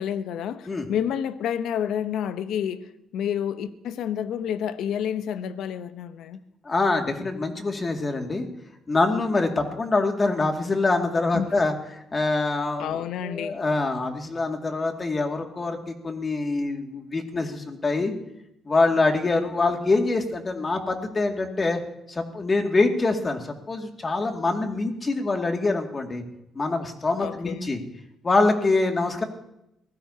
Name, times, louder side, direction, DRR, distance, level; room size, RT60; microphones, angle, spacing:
voice 1, 0.0-2.9 3.1-6.4 11.3-11.5 12.8-13.6 27.2-27.7, left 9 dB, 80° left, 0.8 m, -29 dB
voice 2, 6.6-8.4 8.9-18.1 18.7-21.8 22.1-26.2 26.5-27.8 28.2-29.2, left 3 dB, 30° left, 2.3 m, -25 dB
23.0 x 16.0 x 2.9 m
cardioid pair, 90°, 0 cm